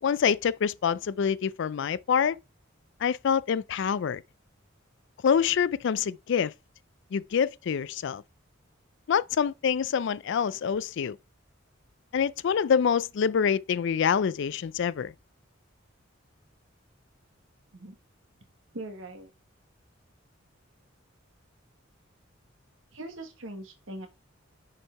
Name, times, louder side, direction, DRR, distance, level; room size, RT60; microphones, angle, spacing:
voice 1, 0.0-2.4 3.0-4.2 5.2-6.5 7.1-8.2 9.1-11.2 12.1-15.1, left 7 dB, 65° left, 0.4 m, -26 dB
voice 2, 18.7-19.3 22.9-24.1, right 1 dB, 80° right, 1.6 m, -41 dB
6.6 x 4.5 x 4.5 m
head